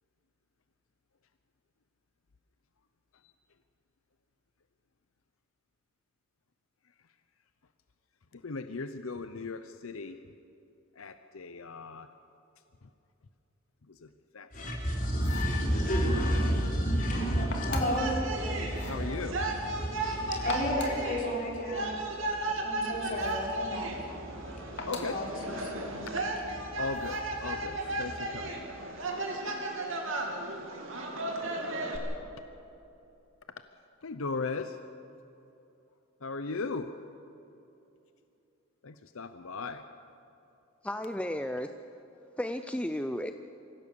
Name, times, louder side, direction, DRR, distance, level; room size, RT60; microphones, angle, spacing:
voice 1, 8.3-10.2 11.0-12.1 12.8-12.9 13.9-14.5 18.9-19.4 24.9-25.2 26.8-28.5 34.0-34.8 36.2-37.0 38.8-39.8, left 4 dB, 80° left, 10 dB, 0.7 m, -37 dB
voice 2, 14.5-22.3 22.6-26.2 26.7-26.8 27.4-28.6, equal, 40° left, -2 dB, 4.0 m, -32 dB
sound 1, 15.1-15.6 17.5-18.1 18.7-19.0 20.3-21.1 23.2-23.5 24.8-25.2 26.9-27.3, left 3 dB, 55° left, 2.5 m, -41 dB
sound 2, 18.0-32.0, right 2 dB, 70° right, 2.7 m, -35 dB
voice 3, 40.8-41.7 42.4-43.3, left 1 dB, 5° left, 7 dB, 0.4 m, -33 dB
24.5 x 16.0 x 6.9 m, 2.8 s
head